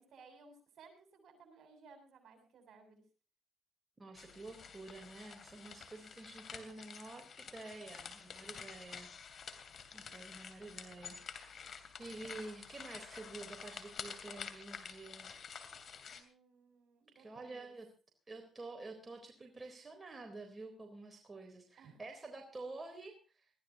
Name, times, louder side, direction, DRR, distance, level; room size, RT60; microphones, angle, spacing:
voice 1, 0.0-3.0 8.5-8.7 9.9-10.2 16.1-17.7 21.8-22.0, right 4 dB, 65° right, 5 dB, 7.3 m, -60 dB
voice 2, 4.0-9.1 9.9-11.6 12.0-15.4 17.2-17.9 18.3-23.5, right 2 dB, 25° right, 3 dB, 3.8 m, -49 dB
sound 1, 4.2-16.2, left 6 dB, 55° left, 2.8 m, -49 dB
22.0 x 15.0 x 2.9 m, 0.36 s
cardioid pair, 90°, 0 cm